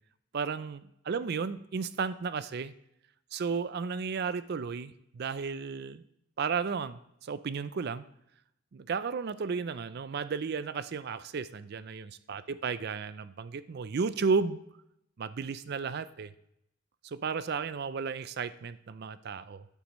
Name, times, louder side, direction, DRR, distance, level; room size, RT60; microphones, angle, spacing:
voice 1, 0.3-2.7 3.3-6.0 6.4-8.0 8.7-14.6 15.2-16.3 17.0-19.7, right 5 dB, 50° right, 15 dB, 0.4 m, -33 dB
14.0 x 8.2 x 3.1 m, 0.80 s
head